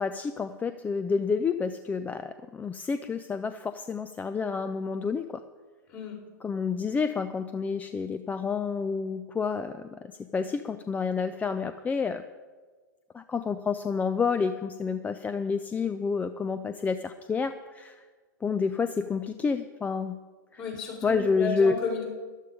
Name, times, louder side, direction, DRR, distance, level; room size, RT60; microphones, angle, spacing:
voice 1, 0.0-2.2 2.6-3.5 3.9-5.2 6.4-9.7 10.3-10.4 10.9-12.2 13.3-16.9 17.3-17.5 18.4-20.1 21.0-21.7, left 5 dB, 15° left, 11 dB, 0.5 m, -28 dB
voice 2, 20.6-22.0, left 4 dB, 40° left, -1 dB, 4.7 m, -33 dB
13.0 x 11.5 x 5.0 m, 1.4 s
hypercardioid pair, 105°, 10 cm